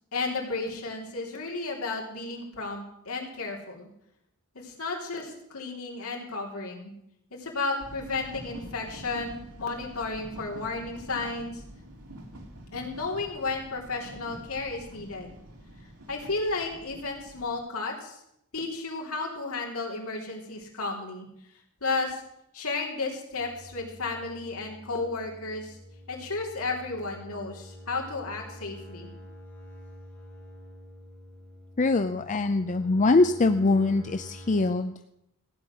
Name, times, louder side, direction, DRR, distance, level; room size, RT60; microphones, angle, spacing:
voice 1, 0.1-3.9 4.6-6.9 7.3-11.6 12.7-15.3 16.1-18.2 18.5-21.3 21.8-22.2 22.5-25.8 26.1-29.1, left 3 dB, 70° left, -1 dB, 3.4 m, -33 dB
sound 1, 7.8-17.6, equal, 85° right, 3.1 m, -46 dB
sound 2, 23.4-34.6, equal, 10° left, 4.0 m, -47 dB
voice 2, 31.8-34.9, left 3 dB, 35° left, 9 dB, 0.5 m, -23 dB
15.5 x 9.7 x 6.2 m, 0.80 s
head